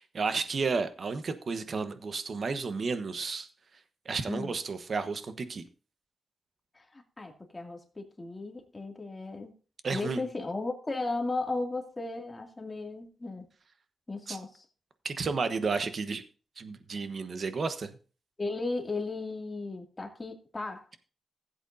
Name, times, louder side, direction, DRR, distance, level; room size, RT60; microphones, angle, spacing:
voice 1, 0.0-3.5 4.0-5.6 9.8-10.2 14.3-14.4 15.0-16.2 16.6-17.9, right 4 dB, 55° right, 1.1 m, -32 dB
voice 2, 6.8-9.5 9.9-13.5 14.1-14.6 18.4-21.0, left 3 dB, 25° left, 2.3 m, -35 dB
15.5 x 8.2 x 2.6 m
cardioid pair, 85°, 0 cm